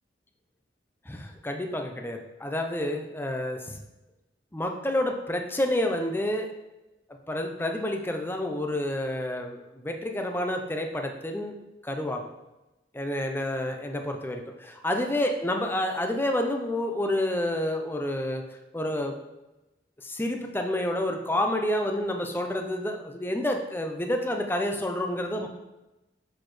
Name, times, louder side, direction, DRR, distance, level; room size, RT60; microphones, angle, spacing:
voice 1, 1.1-3.8 4.5-6.5 7.3-11.5 11.8-12.2 12.9-18.4 18.7-19.1 20.0-25.5, left 1 dB, 10° left, 3 dB, 0.7 m, -29 dB
6.7 x 6.2 x 3.3 m, 0.99 s
head